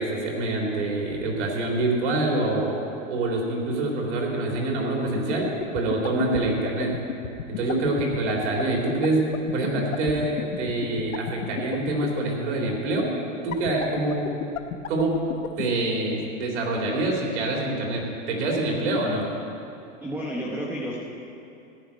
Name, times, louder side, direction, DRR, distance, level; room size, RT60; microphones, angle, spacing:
voice 1, 0.0-2.8 3.1-5.5 5.7-6.9 7.5-9.2 9.5-13.1 13.4-14.4 14.9-15.2 15.6-19.3, right 2 dB, 60° right, 0 dB, 3.5 m, -26 dB
sound 1, 5.2-12.2 13.5-15.6, left 13 dB, 80° left, 0.9 m, -30 dB
voice 2, 20.0-21.0, equal, 5° right, -5 dB, 0.9 m, -31 dB
14.5 x 6.1 x 9.7 m, 2.7 s
supercardioid pair, 160°, 39 cm